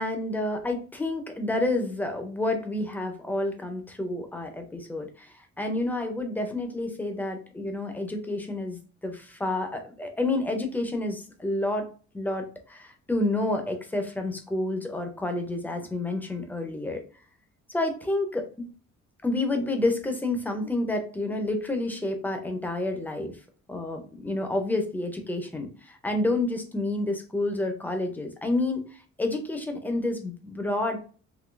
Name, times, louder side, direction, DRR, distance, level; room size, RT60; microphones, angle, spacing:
voice 1, 0.0-11.9 12.1-17.0 17.7-18.5 19.2-23.3 23.7-28.8 29.2-31.0, left 2 dB, 5° left, 5 dB, 0.5 m, -29 dB
3.8 x 2.6 x 2.4 m, 0.39 s
cardioid pair, 170°, 29 cm